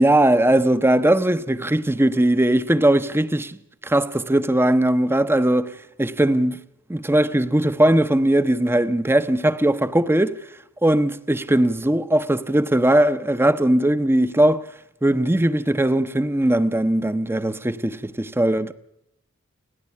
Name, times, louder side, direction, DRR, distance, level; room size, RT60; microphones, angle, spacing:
voice 1, 0.0-3.6 3.8-6.6 6.9-10.4 10.8-14.7 15.0-18.7, right 1 dB, 10° right, 0.8 m, -19 dB
30.0 x 10.5 x 8.4 m
head